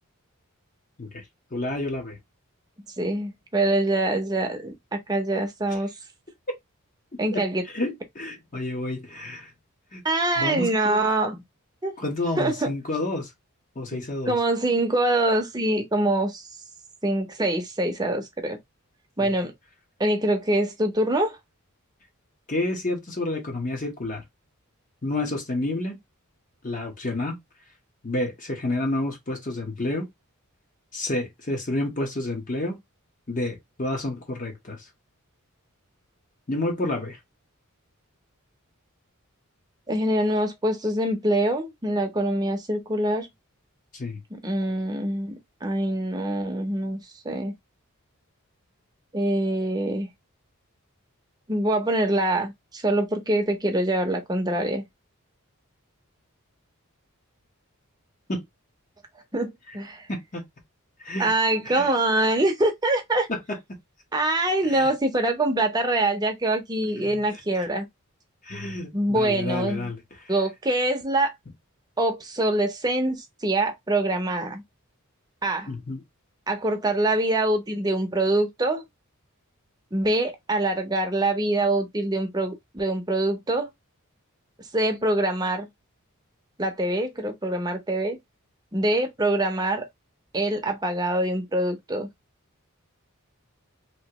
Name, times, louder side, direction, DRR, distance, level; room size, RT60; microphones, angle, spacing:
voice 1, 1.5-2.2 7.3-9.5 9.9-10.0 10.4-11.0 12.0-13.3 13.8-14.3 19.2-19.3 22.5-24.2 25.0-26.0 26.6-27.4 28.0-30.1 30.9-32.8 33.3-34.8 36.5-37.2 43.9-44.2 58.3-58.4 60.1-60.4 61.0-61.4 61.7-61.9 63.3-63.6 64.6-64.9 67.0-67.4 68.4-70.0 75.7-76.0, left 2 dB, 35° left, 1.1 m, -29 dB
voice 2, 3.0-5.9 7.2-7.6 10.0-11.4 11.8-11.9 12.4-12.7 14.3-16.5 17.0-18.6 19.2-19.5 20.0-21.4 39.9-43.3 44.3-45.3 45.6-47.5 49.1-50.1 51.5-54.8 59.3-60.1 61.2-63.3 64.1-67.8 68.9-69.9 70.3-71.3 72.0-74.6 75.4-75.7 76.5-78.8 79.9-83.7 84.7-85.7 86.6-88.2 88.7-89.8 90.3-92.1, right 1 dB, 20° right, 0.8 m, -24 dB
3.0 x 2.9 x 2.9 m
head